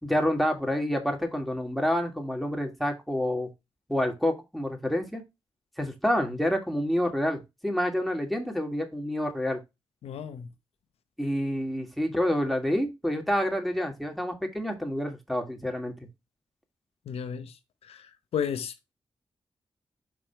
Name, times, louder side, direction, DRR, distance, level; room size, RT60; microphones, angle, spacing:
voice 1, 0.0-3.5 3.9-5.2 5.8-9.6 11.2-15.9, equal, ahead, 2.6 m, -28 dB
voice 2, 10.0-10.5 17.1-17.5 17.8-18.1 18.3-18.7, left 7 dB, 90° left, 0.8 m, -32 dB
6.1 x 4.6 x 4.6 m
supercardioid pair, 40°, 10 cm